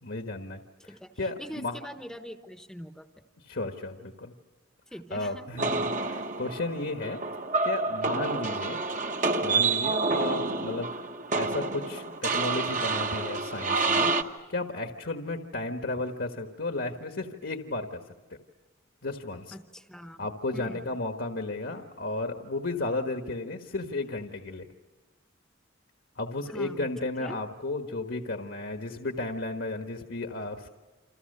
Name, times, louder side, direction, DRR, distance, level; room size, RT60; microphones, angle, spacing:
voice 1, 0.0-0.6 1.2-1.8 3.4-4.3 5.1-7.2 7.6-8.8 9.4-11.0 11.3-14.1 14.5-18.0 18.3-18.4 19.0-19.6 20.2-24.7 26.2-30.7, left 2 dB, 65° left, 5 dB, 1.5 m, -33 dB
voice 2, 0.8-3.1 4.9-5.4 5.7-5.9 8.4-8.8 19.5-20.3 20.5-21.0 26.5-26.9 27.2-27.4, equal, 5° left, 7 dB, 1.0 m, -43 dB
Element Earth, 5.6-14.2, right 3 dB, 40° right, 1.2 m, -28 dB
29.0 x 27.0 x 6.7 m, 1.2 s
head